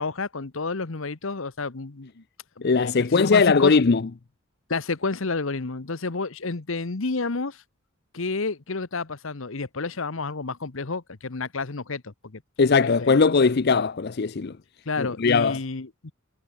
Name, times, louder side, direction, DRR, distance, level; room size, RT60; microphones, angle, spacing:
voice 1, 0.0-2.2 2.6-3.7 4.7-7.6 8.1-12.4 12.8-13.2 14.9-16.1, left 3 dB, 70° left, 1.1 m, -30 dB
voice 2, 2.6-4.0 12.6-14.6 15.0-15.6, left 4 dB, 50° left, 0.5 m, -20 dB
head